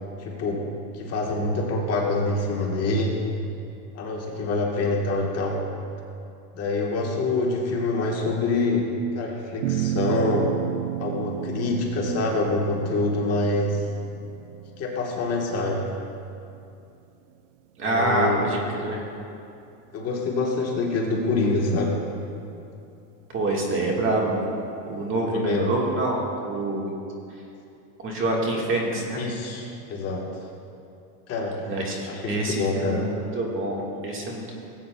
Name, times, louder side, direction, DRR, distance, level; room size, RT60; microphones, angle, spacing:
voice 1, 0.2-0.7 0.9-3.2 3.9-5.6 6.5-8.9 9.1-10.5 11.0-13.8 14.8-15.9 17.8-18.4 19.9-22.0 25.1-25.7 29.2-30.3 31.3-31.7 32.1-33.0, left 2 dB, 30° left, -1 dB, 1.3 m, -26 dB
sound 1, 9.6-16.2, right 13 dB, 55° right, 0.5 m, -32 dB
voice 2, 17.8-19.0 23.3-24.5 24.9-26.9 28.0-29.2 31.7-34.6, right 2 dB, 25° right, -1 dB, 1.6 m, -26 dB
18.0 x 8.5 x 2.3 m, 2.7 s
supercardioid pair, 135°, 48 cm